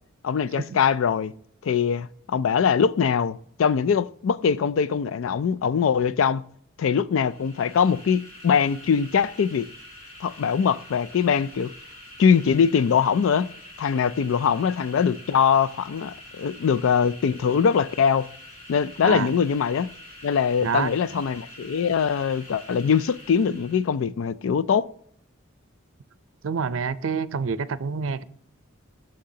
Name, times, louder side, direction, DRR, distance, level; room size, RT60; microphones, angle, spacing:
voice 1, 0.2-1.3 1.6-6.4 6.8-9.7 10.2-11.7 12.2-13.5 13.8-18.3 18.7-19.9 20.2-24.9, left 6 dB, 70° left, 0.3 m, -22 dB
sound 1, 7.1-24.0, left 1 dB, 45° left, 2.6 m, -46 dB
voice 2, 20.6-21.2 26.4-28.2, right 5 dB, 70° right, 0.5 m, -27 dB
11.5 x 6.6 x 2.7 m
head